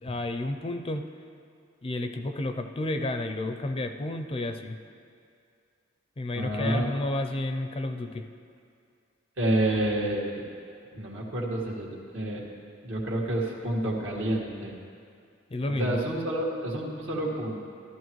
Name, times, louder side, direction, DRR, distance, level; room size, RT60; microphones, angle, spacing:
voice 1, 0.0-1.0 1.8-4.8 6.2-8.3 15.5-16.0, left 2 dB, 30° left, 6 dB, 0.4 m, -31 dB
voice 2, 6.3-6.9 9.4-10.4 10.9-12.4 12.8-14.7 15.8-17.6, right 1 dB, 70° right, -2 dB, 1.8 m, -29 dB
14.0 x 12.5 x 3.1 m, 2.3 s
head